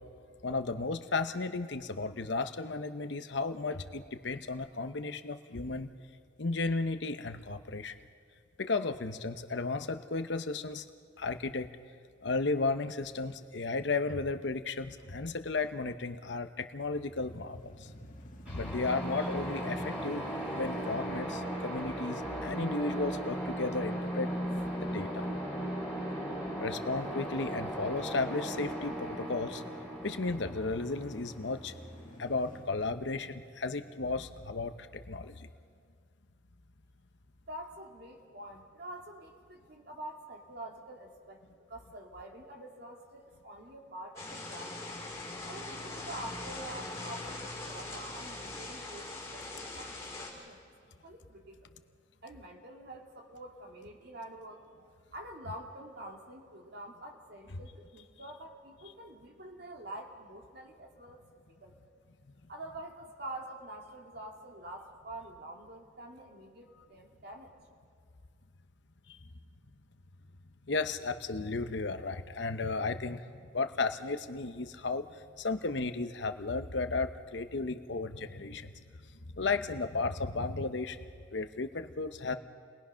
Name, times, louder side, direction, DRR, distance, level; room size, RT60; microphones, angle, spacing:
voice 1, 0.4-5.9 6.4-8.0 8.6-10.9 11.2-11.7 12.2-17.9 18.5-20.3 20.5-24.3 24.8-25.2 26.6-29.6 30.0-31.7 32.2-35.5 69.1-69.2 70.7-75.1 75.4-78.7 79.3-81.0 81.3-82.4, left 3 dB, 65° left, 9 dB, 0.9 m, -34 dB
sound 1, 16.8-24.8 25.3-25.4 29.9-34.4, equal, 40° left, 2.0 m, -52 dB
sound 2, 18.5-32.1, right 1 dB, 5° right, 6.3 m, -37 dB
voice 2, 37.5-41.4 41.7-44.8 45.4-50.6 51.0-51.6 52.2-61.2 61.5-61.8 62.5-67.5, right 1 dB, 55° right, 1 dB, 2.7 m, -46 dB
sound 3, 44.2-50.3, left 2 dB, 15° left, 5.2 m, -41 dB
30.0 x 20.0 x 5.8 m, 2.1 s
head